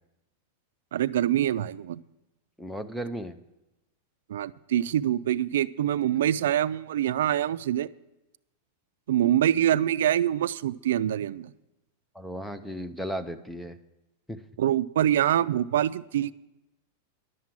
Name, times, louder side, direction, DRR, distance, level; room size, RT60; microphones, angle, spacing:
voice 1, 0.9-2.0 4.3-7.9 9.1-11.5 14.6-16.3, right 11 dB, 80° right, 16 dB, 0.3 m, -25 dB
voice 2, 2.6-3.4 12.1-13.8 14.3-14.4, equal, ahead, 9 dB, 0.4 m, -35 dB
11.0 x 7.3 x 7.5 m, 0.95 s
supercardioid pair, 160°, 0 cm